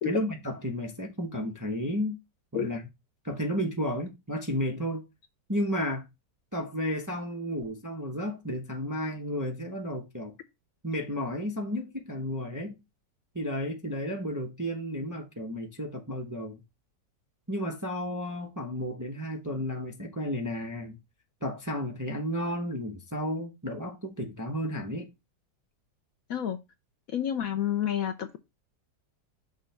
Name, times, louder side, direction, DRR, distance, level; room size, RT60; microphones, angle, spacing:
voice 1, 0.0-2.2 2.5-2.9 3.2-5.0 5.5-6.1 6.5-10.4 10.8-12.8 13.3-16.6 17.5-21.0 21.4-25.1, equal, 15° right, 0.6 m, -32 dB
voice 2, 27.1-28.4, left 10 dB, 65° left, 1.0 m, -29 dB
6.3 x 3.2 x 5.6 m
omnidirectional pair, 1.9 m